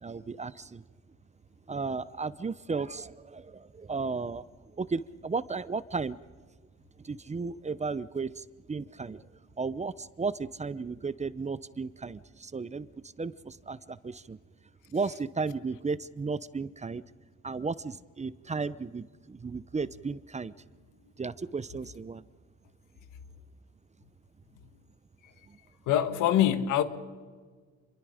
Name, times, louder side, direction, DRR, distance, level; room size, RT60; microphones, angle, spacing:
voice 1, 0.0-0.8 1.7-6.2 7.0-9.2 9.6-14.4 14.9-17.0 17.4-20.5 21.2-22.2 25.5-25.6, right 4 dB, 25° right, 0.7 m, -34 dB
voice 2, 25.9-26.8, left 11 dB, 90° left, 1.6 m, -24 dB
28.0 x 23.0 x 5.0 m
cardioid pair, 90°, 30 cm